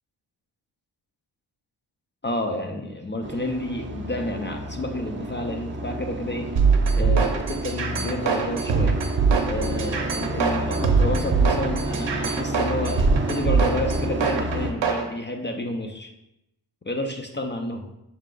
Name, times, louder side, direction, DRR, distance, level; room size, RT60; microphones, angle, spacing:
voice 1, 2.2-6.5 6.9-9.0 9.4-16.1 16.8-17.9, left 1 dB, 25° left, 3 dB, 0.5 m, -30 dB
sound 1, 3.2-14.7, right 1 dB, 25° right, 0.6 m, -30 dB
sound 2, 6.6-15.0, right 5 dB, 65° right, 0.7 m, -22 dB
5.8 x 2.4 x 3.7 m, 0.87 s
cardioid pair, 65°, 47 cm